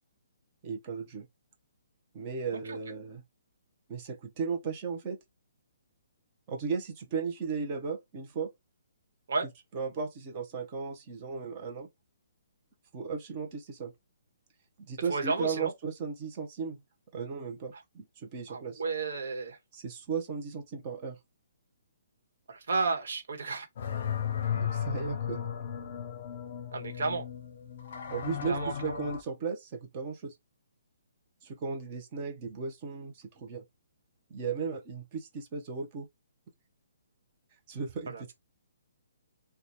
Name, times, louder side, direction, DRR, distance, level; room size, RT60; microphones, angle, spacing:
voice 1, 0.6-1.3 2.1-3.2 3.9-5.2 6.5-8.5 9.7-11.9 12.9-13.9 14.8-16.8 17.1-18.8 19.7-21.2 24.5-25.4 28.1-30.4 31.4-33.6 34.3-36.1 37.7-38.3, right 5 dB, 25° right, 0.7 m, -36 dB
voice 2, 15.1-15.7 18.5-19.6 22.5-23.7 26.7-27.3 28.5-29.0 38.1-38.3, right 4 dB, 65° right, 1.2 m, -32 dB
sound 1, 23.8-29.2, left 8 dB, 40° left, 0.7 m, -35 dB
3.0 x 2.3 x 4.0 m
hypercardioid pair, 170°, 0 cm